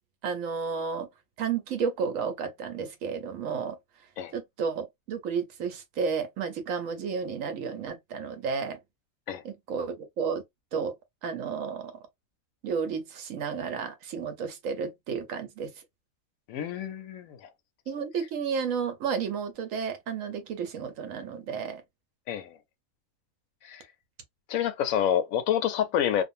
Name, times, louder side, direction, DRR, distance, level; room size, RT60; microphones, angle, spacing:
voice 1, 0.2-1.1 1.4-3.8 4.3-8.8 9.4-10.4 10.7-10.9 11.2-11.9 12.6-15.7 17.9-21.8, right 6 dB, 80° right, 1.1 m, -32 dB
voice 2, 16.5-17.5 22.3-22.6 23.6-23.8 24.5-26.2, left 9 dB, 85° left, 1.0 m, -28 dB
2.5 x 2.4 x 2.6 m
omnidirectional pair, 1.4 m